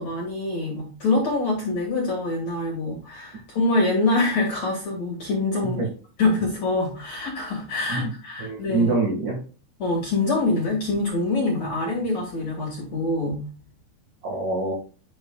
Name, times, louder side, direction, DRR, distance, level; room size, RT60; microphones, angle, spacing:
voice 1, 0.0-5.8 6.2-8.9 9.8-13.5, left 2 dB, 45° left, -1 dB, 2.5 m, -25 dB
voice 2, 8.4-9.4 14.2-14.7, right 3 dB, 50° right, -2 dB, 2.8 m, -25 dB
10.5 x 6.3 x 2.4 m, 0.36 s
omnidirectional pair, 5.8 m